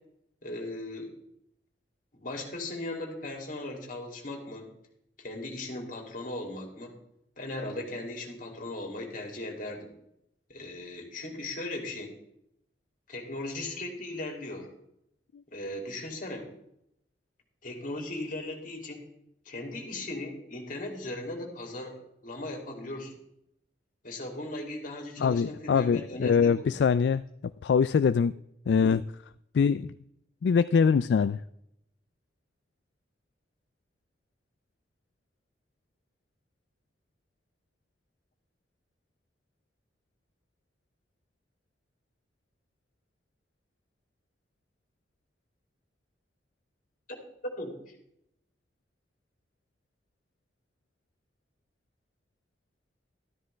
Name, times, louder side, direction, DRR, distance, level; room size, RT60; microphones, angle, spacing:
voice 1, 0.4-1.1 2.1-4.7 5.2-6.9 7.4-9.9 10.5-12.1 13.1-14.7 15.5-16.5 17.6-19.0 19.4-22.0 22.2-23.1 24.0-26.8 47.6-47.9, left 2 dB, 50° left, 2 dB, 2.8 m, -38 dB
voice 2, 25.2-27.2 27.6-28.3 28.7-29.0 29.5-29.9 30.4-31.4, left 6 dB, 70° left, 14 dB, 0.3 m, -23 dB
13.0 x 12.5 x 3.4 m, 0.77 s
head